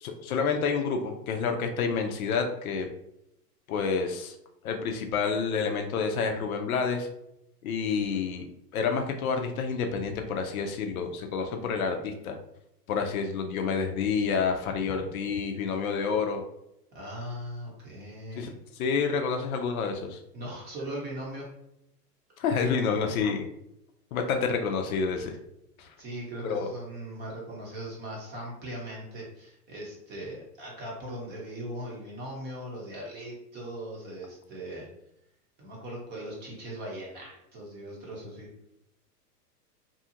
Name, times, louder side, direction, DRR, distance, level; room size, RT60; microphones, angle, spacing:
voice 1, 0.0-2.9 3.7-4.3 4.6-7.1 7.6-8.5 8.7-12.4 12.9-16.4 18.4-18.5 18.8-20.2 22.4-23.5 24.1-25.4 25.8-25.9 26.4-26.7, left 5 dB, 60° left, 4 dB, 0.5 m, -28 dB
voice 2, 16.9-18.5 20.3-21.5 26.0-34.9 35.6-38.5, right 1 dB, 20° right, -3 dB, 0.7 m, -39 dB
2.7 x 2.4 x 2.7 m, 0.81 s
hypercardioid pair, 130°, 48 cm